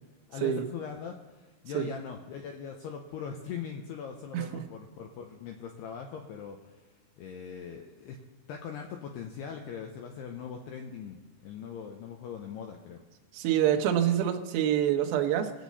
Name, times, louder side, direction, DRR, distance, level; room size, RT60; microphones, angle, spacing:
voice 1, 0.3-8.2 8.5-13.0, left 7 dB, 85° left, 3 dB, 2.4 m, -41 dB
voice 2, 13.3-15.5, right 10 dB, 80° right, 4 dB, 2.1 m, -26 dB
21.5 x 8.4 x 4.1 m, 1.3 s
omnidirectional pair, 5.7 m